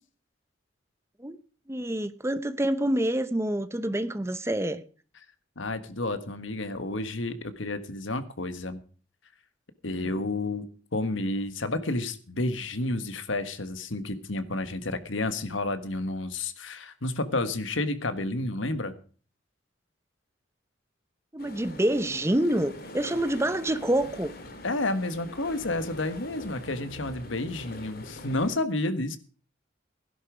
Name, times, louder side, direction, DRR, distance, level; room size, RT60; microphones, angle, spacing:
voice 1, 1.7-4.8 9.9-10.2 21.3-24.3, right 1 dB, 15° right, 0.8 m, -27 dB
voice 2, 5.6-8.8 9.8-10.7 10.9-18.9 24.6-29.2, left 2 dB, 85° left, 1.5 m, -30 dB
sound 1, 21.4-28.6, left 1 dB, 50° left, 2.5 m, -44 dB
16.5 x 11.0 x 5.0 m
head